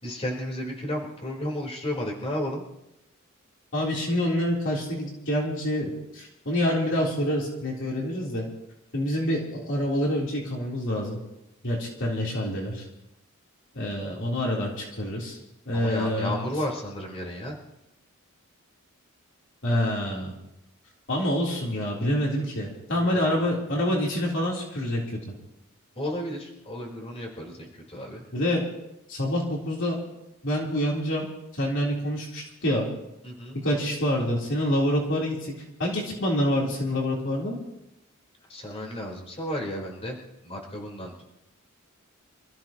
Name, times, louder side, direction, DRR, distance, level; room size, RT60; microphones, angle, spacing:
voice 1, 0.0-2.6 15.7-17.6 22.9-23.3 26.0-28.2 33.2-33.6 38.5-40.2 40.4-41.1, left 1 dB, 30° left, -1 dB, 4.1 m, -33 dB
voice 2, 3.7-8.4 8.9-11.2 11.6-12.8 13.7-15.4 15.7-16.3 19.6-20.3 21.1-25.3 28.3-28.6 29.1-30.0 30.4-31.3 31.5-32.8 33.6-35.5 35.8-37.6, left 1 dB, 60° left, -3 dB, 3.5 m, -27 dB
27.5 x 15.0 x 3.0 m, 0.88 s
head